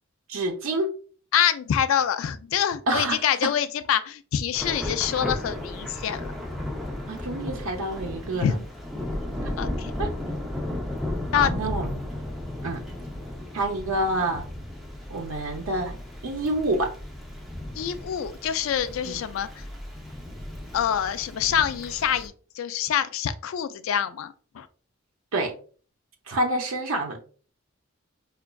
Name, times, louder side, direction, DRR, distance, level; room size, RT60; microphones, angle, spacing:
voice 1, 0.3-0.9 2.9-3.5 7.1-8.6 9.4-9.5 10.0-10.1 11.3-11.9 12.6-12.8 13.5-14.5 15.1-16.9 19.0-19.2 25.3-25.5 26.3-27.2, right 1 dB, 85° right, 0.6 m, -27 dB
voice 2, 1.3-6.3 8.3-8.6 9.6-9.9 11.3-11.6 17.7-19.5 20.7-24.7, left 9 dB, 75° left, 0.3 m, -26 dB
Thunder / Rain, 4.5-22.3, left 1 dB, ahead, 0.5 m, -35 dB
5.0 x 2.3 x 2.2 m
head